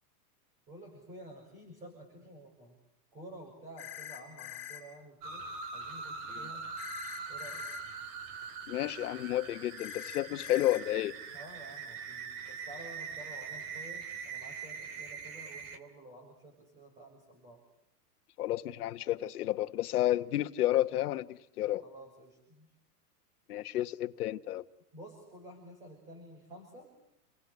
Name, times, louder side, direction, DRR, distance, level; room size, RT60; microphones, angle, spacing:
voice 1, 0.7-2.8 3.1-5.5 5.7-6.6 7.3-7.7 11.3-17.6 21.8-22.7 24.9-26.9, right 1 dB, 15° right, 6.3 m, -51 dB
sound 1, 3.8-4.8 6.8-7.8 9.8-10.8, left 12 dB, 20° left, 6.2 m, -44 dB
sound 2, 5.2-15.8, right 5 dB, 30° right, 2.4 m, -42 dB
voice 2, 8.7-11.1 18.4-21.8 23.5-24.6, left 14 dB, 65° left, 1.5 m, -31 dB
29.5 x 24.0 x 8.3 m
supercardioid pair, 175°, 48 cm